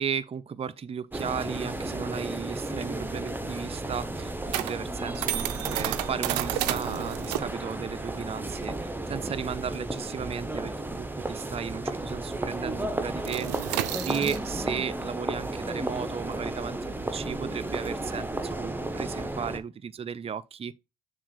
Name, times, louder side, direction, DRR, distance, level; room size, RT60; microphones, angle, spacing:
voice 1, 0.0-13.5 14.0-20.7, right 7 dB, 30° right, 0.5 m, -35 dB
sound 1, 1.1-19.6, right 1 dB, 10° right, 0.9 m, -33 dB
sound 2, 3.6-12.0 12.2-12.5 12.8-18.5, right 15 dB, 80° right, 0.5 m, -34 dB
7.2 x 2.5 x 5.5 m
hypercardioid pair, 50°, 21 cm